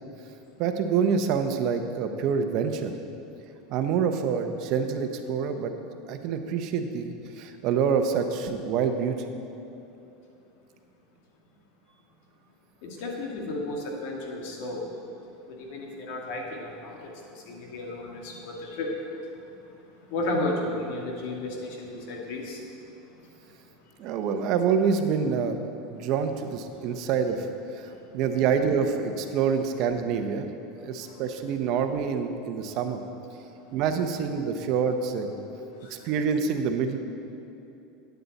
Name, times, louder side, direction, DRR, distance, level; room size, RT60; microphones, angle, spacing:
voice 1, 0.6-2.9 3.7-5.7 6.1-9.2 24.0-27.5 27.7-30.5 30.8-33.0 33.7-35.4 35.9-37.0, right 6 dB, 55° right, 7 dB, 0.9 m, -26 dB
voice 2, 12.8-14.9 15.5-18.9 20.1-22.6 31.0-31.1 35.6-35.9, left 2 dB, 65° left, 0 dB, 2.1 m, -33 dB
12.0 x 9.4 x 4.2 m, 3.0 s
supercardioid pair, 125°, 0 cm